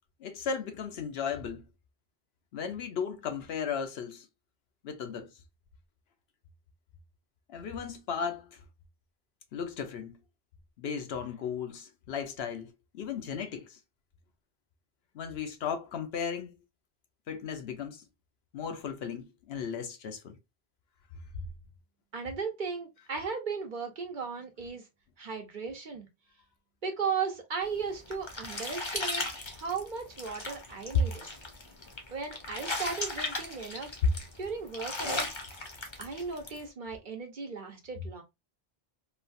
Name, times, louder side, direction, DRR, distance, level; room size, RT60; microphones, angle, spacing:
voice 1, 0.2-1.7 2.5-4.3 4.8-5.3 7.5-8.6 9.5-10.2 10.8-13.8 15.1-16.5 17.3-18.0 18.5-20.4 30.9-31.0 34.0-34.1, left 5 dB, 75° left, 0.8 m, -34 dB
voice 2, 22.1-24.9 25.2-26.1 26.8-31.3 32.1-33.9 34.4-35.3 36.0-38.2, right 5 dB, 50° right, 0.8 m, -36 dB
sound 1, 27.7-36.6, left 2 dB, 30° left, 0.6 m, -37 dB
3.1 x 2.4 x 2.5 m
omnidirectional pair, 1.1 m